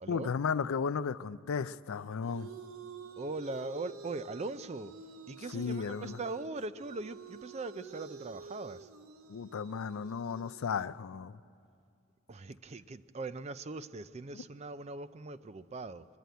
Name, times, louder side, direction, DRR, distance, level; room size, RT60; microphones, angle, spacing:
voice 1, 0.1-2.5 5.5-6.2 9.3-11.4 14.3-14.4, left 6 dB, 80° left, 16 dB, 0.4 m, -34 dB
sound 1, 1.9-10.8, right 4 dB, 75° right, 0.8 m, -49 dB
voice 2, 3.2-4.9 5.3-8.9 12.3-16.1, right 3 dB, 30° right, 13 dB, 0.4 m, -40 dB
22.0 x 12.5 x 9.2 m, 2.3 s
head